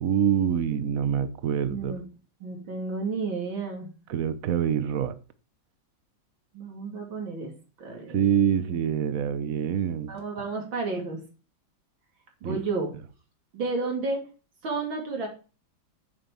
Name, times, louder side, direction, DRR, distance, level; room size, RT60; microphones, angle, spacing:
voice 1, 0.0-2.0 4.1-5.2 8.1-10.1 12.4-12.6, right 9 dB, 50° right, 14 dB, 1.2 m, -25 dB
voice 2, 1.7-2.0 2.4-3.9 6.5-7.5 7.8-8.2 8.6-8.7 10.1-11.2 12.4-12.9 13.5-14.2 14.6-15.3, right 3 dB, 75° right, 1 dB, 3.8 m, -31 dB
9.3 x 7.5 x 7.1 m, 0.35 s
omnidirectional pair, 2.1 m